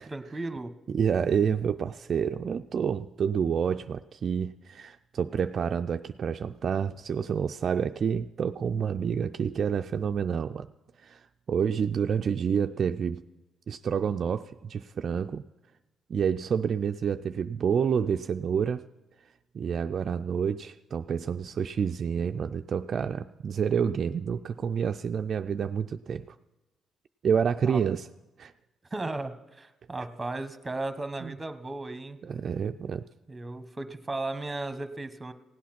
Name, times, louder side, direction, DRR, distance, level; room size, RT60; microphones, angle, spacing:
voice 1, 0.0-0.7 27.7-27.8 28.9-32.2 33.3-35.3, right 2 dB, 15° right, 10 dB, 1.1 m, -35 dB
voice 2, 0.9-10.7 11.0-13.2 13.7-15.4 16.1-18.8 19.5-26.4 27.2-28.1 28.4-28.5 31.2-31.3 32.2-33.1, right 7 dB, 50° right, 7 dB, 0.3 m, -28 dB
16.5 x 8.4 x 5.9 m, 1.1 s
cardioid pair, 90°, 0 cm